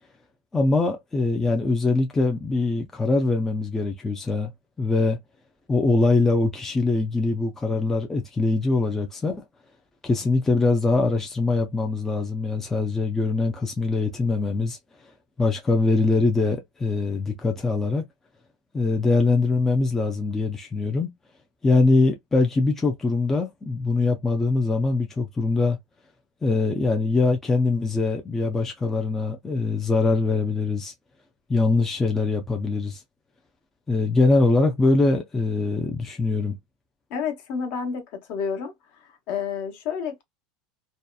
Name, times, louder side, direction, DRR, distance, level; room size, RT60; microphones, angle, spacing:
voice 1, 0.5-4.5 4.8-5.2 5.7-9.4 10.0-14.8 15.4-18.0 18.7-21.1 21.6-25.8 26.4-30.9 31.5-33.0 33.9-36.6, left 3 dB, 10° left, 0.4 m, -23 dB
voice 2, 37.1-38.7 39.0-40.2, left 6 dB, 50° left, 1.0 m, -30 dB
2.7 x 2.2 x 2.2 m
supercardioid pair, 150°, 3 cm